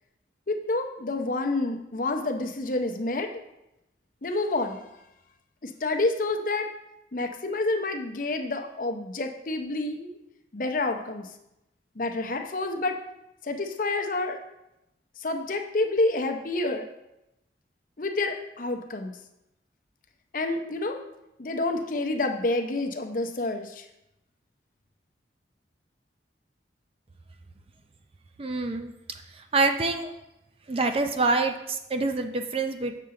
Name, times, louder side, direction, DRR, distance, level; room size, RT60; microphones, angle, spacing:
voice 1, 0.5-3.3 4.2-4.8 5.6-6.7 7.1-10.1 10.5-11.3 12.0-13.0 13.4-14.4 15.2-16.9 18.0-19.1 20.3-21.0 21.4-23.8, left 2 dB, 50° left, 5 dB, 0.7 m, -28 dB
voice 2, 28.4-28.9 29.5-30.1 30.7-33.0, right 3 dB, 30° right, 7 dB, 0.5 m, -26 dB
7.3 x 6.7 x 3.8 m, 0.87 s
head